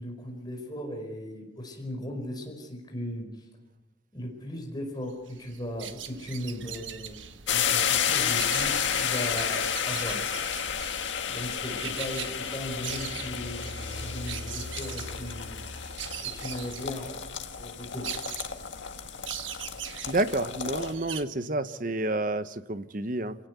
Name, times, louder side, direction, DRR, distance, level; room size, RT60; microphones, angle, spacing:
voice 1, 0.0-3.4 4.1-7.2 7.5-10.2 11.2-15.6 16.2-17.3 17.6-18.1, equal, 20° left, 2 dB, 4.9 m, -37 dB
sound 1, 5.3-21.2, right 9 dB, 85° right, 1.5 m, -41 dB
sound 2, 7.5-20.9, left 8 dB, 75° left, 1.6 m, -31 dB
sound 3, 12.6-17.2, left 1 dB, 65° right, 2.8 m, -43 dB
voice 2, 20.1-23.4, right 2 dB, 45° right, 12 dB, 1.0 m, -29 dB
27.0 x 17.5 x 8.2 m, 1.0 s
head